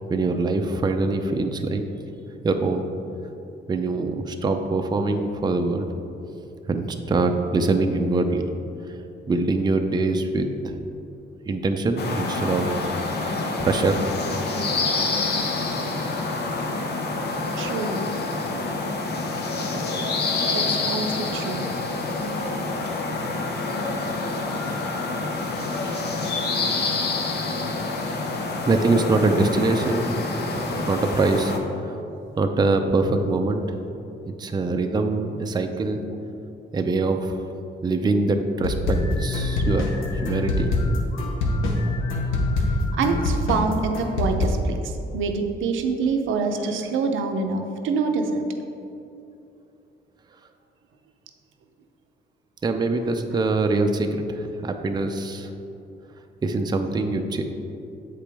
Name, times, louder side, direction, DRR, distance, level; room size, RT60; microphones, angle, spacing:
voice 1, 0.1-1.8 2.4-2.8 3.7-5.9 6.7-8.4 8.9-9.0 9.3-10.7 11.4-12.9 13.6-14.0 28.7-30.2 30.5-31.6 31.8-32.0 32.4-33.6 34.4-36.0 36.7-37.3 37.8-39.9 40.2-40.7 52.6-55.5 56.4-57.4, right 3 dB, 20° right, 5 dB, 0.5 m, -23 dB
sound 1, 12.0-31.6, left 3 dB, 55° left, 0.8 m, -27 dB
voice 2, 17.6-18.2 20.4-21.7 25.8-26.1 42.7-48.4, right 4 dB, 80° right, 5 dB, 0.6 m, -26 dB
sound 2, 38.6-44.5, left 2 dB, 90° left, 0.8 m, -24 dB
7.5 x 5.0 x 3.4 m, 2.7 s
cardioid pair, 90°, 20 cm